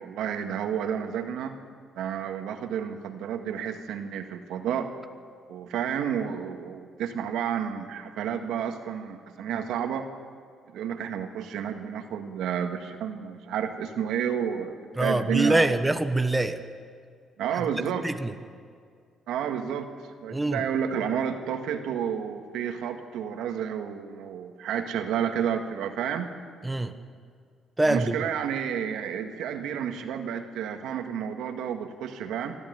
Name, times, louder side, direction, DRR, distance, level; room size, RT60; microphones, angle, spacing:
voice 1, 0.0-1.5 2.0-4.9 5.5-10.1 10.7-15.7 17.4-18.1 19.3-26.3 27.8-32.6, right 8 dB, 85° right, 1.8 m, -31 dB
voice 2, 15.0-16.6 17.7-18.3 20.3-20.6 26.6-26.9 27.8-28.1, right 2 dB, 10° right, 1.2 m, -24 dB
25.0 x 13.5 x 9.6 m
cardioid pair, 90°, 0 cm